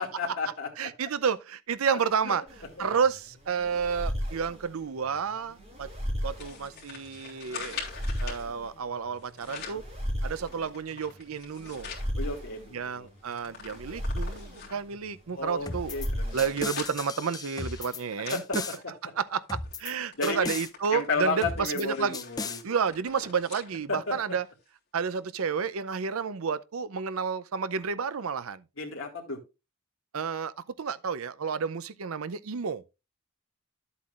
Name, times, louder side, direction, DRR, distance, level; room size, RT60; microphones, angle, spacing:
voice 1, 0.0-0.7 1.9-2.0 2.2-2.4 2.8-2.9 12.2-13.1 15.4-16.5 18.3-18.4 20.2-20.5 20.9-22.6 23.9-24.0 28.8-29.4, left 3 dB, 75° left, 2.3 m, -32 dB
voice 2, 0.8-2.4 2.8-5.9 6.2-7.9 8.2-9.8 10.2-11.9 12.7-16.0 16.3-18.7 19.0-22.2 22.6-24.5 24.9-28.6 30.1-32.8, right 6 dB, 90° right, 0.6 m, -31 dB
sound 1, 2.5-17.0, equal, 30° right, 5.5 m, -36 dB
sound 2, 6.4-8.4 9.2-9.9 10.4-12.1 12.5-12.6 12.9-14.9 15.5-19.2 19.6-19.8 20.1-23.7 24.1-24.2 25.1-25.2, left 6 dB, 50° left, 3.3 m, -44 dB
sound 3, 15.7-16.1 16.4-18.0 18.3-18.8 19.5-19.9 20.2-20.7 21.4-21.8 22.1-22.6, left 4 dB, 20° left, 0.5 m, -36 dB
11.0 x 8.1 x 2.5 m
head